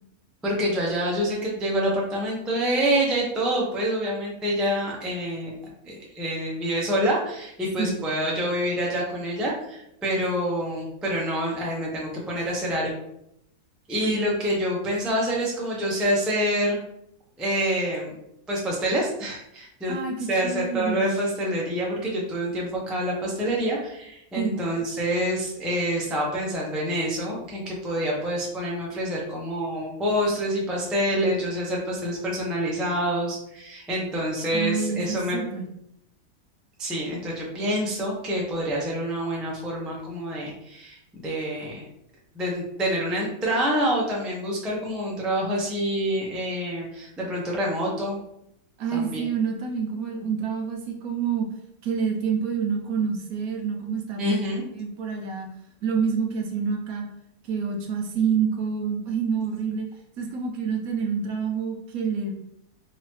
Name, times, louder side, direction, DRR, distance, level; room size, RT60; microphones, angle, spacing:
voice 1, 0.4-5.5 5.8-12.9 13.9-16.8 17.4-18.1 18.5-20.0 20.3-35.4 36.8-41.8 42.3-48.2 48.9-49.2 54.2-54.6, equal, ahead, -3 dB, 0.4 m, -27 dB
voice 2, 19.9-21.1 24.4-24.6 34.5-35.6 48.8-51.5 51.8-54.3 54.7-55.5 55.8-57.1 57.4-59.9 60.2-62.3, right 6 dB, 70° right, 2 dB, 1.1 m, -27 dB
3.8 x 2.8 x 3.0 m, 0.77 s
omnidirectional pair, 1.7 m